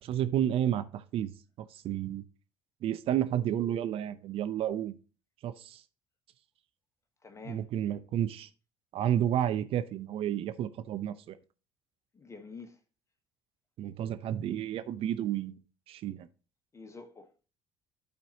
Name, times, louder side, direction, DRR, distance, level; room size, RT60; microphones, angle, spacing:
voice 1, 0.0-1.3 1.6-2.2 2.8-5.0 5.4-5.8 7.5-8.5 8.9-11.4 13.8-15.6 15.9-16.3, right 11 dB, 55° right, 0.6 m, -31 dB
voice 2, 7.2-7.6 12.1-12.8 16.7-17.5, left 4 dB, 25° left, 1.2 m, -48 dB
12.0 x 4.2 x 2.9 m
hypercardioid pair, 60°, 11 cm